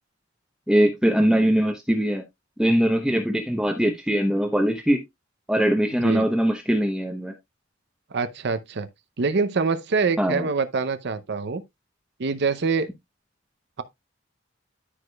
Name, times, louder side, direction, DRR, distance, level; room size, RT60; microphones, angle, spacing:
voice 1, 0.7-2.2 2.6-5.0 5.5-7.3 10.2-10.5, equal, 5° right, 0.8 m, -21 dB
voice 2, 8.1-8.9 9.2-11.6 12.2-12.9, right 4 dB, 60° right, 0.6 m, -25 dB
13.5 x 4.9 x 2.3 m
head